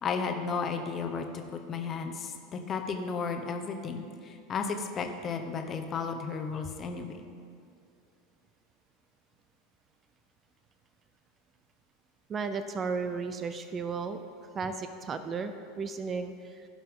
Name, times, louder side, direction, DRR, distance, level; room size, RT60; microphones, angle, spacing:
voice 1, 0.0-7.2, left 5 dB, 30° left, 5 dB, 0.9 m, -34 dB
voice 2, 12.3-14.2 14.5-16.7, right 5 dB, 30° right, 9 dB, 0.5 m, -34 dB
16.0 x 5.6 x 3.7 m, 2.3 s
figure-of-eight pair, 80°, 0 cm